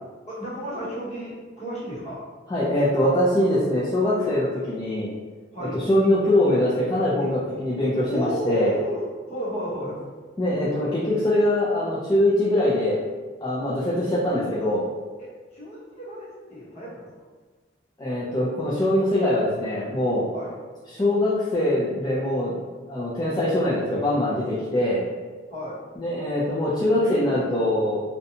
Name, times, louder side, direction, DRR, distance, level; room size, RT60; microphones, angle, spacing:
voice 1, 0.3-2.2 5.5-5.8 8.0-9.0 9.3-10.0 15.2-17.3 20.3-20.5 25.5-25.8, equal, 35° left, -7 dB, 0.9 m, -33 dB
voice 2, 2.5-5.1 5.7-8.7 10.4-13.0 13.4-14.9 18.0-20.2 20.9-22.5 22.9-25.1 26.0-28.0, left 1 dB, 20° left, -8 dB, 0.4 m, -23 dB
2.7 x 2.2 x 2.6 m, 1.4 s
head